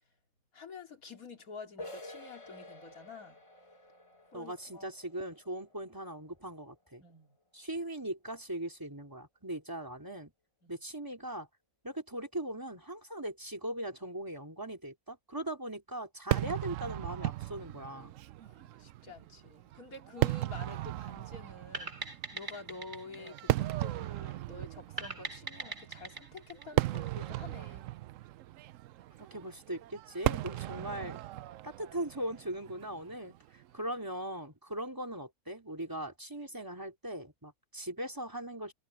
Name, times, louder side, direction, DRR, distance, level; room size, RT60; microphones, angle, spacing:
voice 1, 0.5-3.4 4.3-4.9 7.0-7.4 10.6-10.7 18.4-27.9 30.8-30.9, left 3 dB, 70° left, 3.3 m, -49 dB
sound 1, 1.8-7.3, left 1 dB, 20° left, 1.7 m, -51 dB
voice 2, 4.3-7.0 7.5-10.3 10.7-11.5 11.8-18.2 29.2-31.2 31.6-33.4 33.7-38.7, right 1 dB, 15° right, 3.7 m, -39 dB
Fireworks, 16.3-33.6, right 15 dB, 70° right, 0.8 m, -36 dB
sound 2, 21.7-24.3 25.0-27.5, right 3 dB, 35° right, 2.0 m, -42 dB
omnidirectional pair, 1.6 m